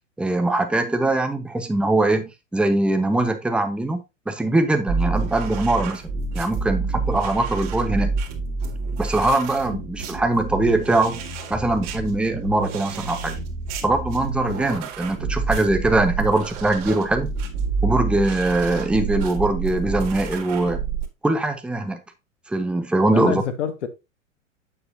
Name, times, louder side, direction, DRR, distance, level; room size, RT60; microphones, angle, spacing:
voice 1, 0.2-6.0 6.3-8.1 9.0-11.2 11.5-13.4 13.8-17.3 17.8-20.8 21.2-22.0 22.5-23.4, right 2 dB, 5° right, 0.9 m, -22 dB
sound 1, 4.9-21.1, right 4 dB, 40° right, 2.0 m, -28 dB
voice 2, 23.1-23.9, left 7 dB, 65° left, 1.5 m, -27 dB
7.9 x 7.1 x 2.6 m
figure-of-eight pair, 95°, 38 cm